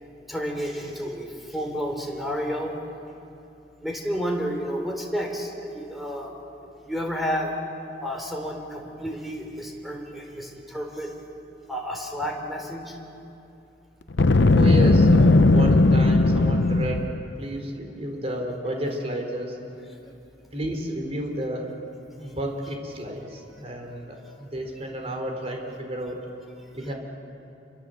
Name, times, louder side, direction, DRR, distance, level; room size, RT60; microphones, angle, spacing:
voice 1, 0.3-2.7 3.8-6.3 6.6-7.5 8.0-11.1 11.7-13.0 20.0-20.1, equal, ahead, 1 dB, 3.9 m, -31 dB
Boom, 14.1-17.2, left 2 dB, 80° left, 0.8 m, -17 dB
voice 2, 14.5-19.6 20.5-21.7 22.2-26.2 26.7-26.9, right 1 dB, 35° right, 3 dB, 4.1 m, -31 dB
28.0 x 26.0 x 7.9 m, 2.8 s
head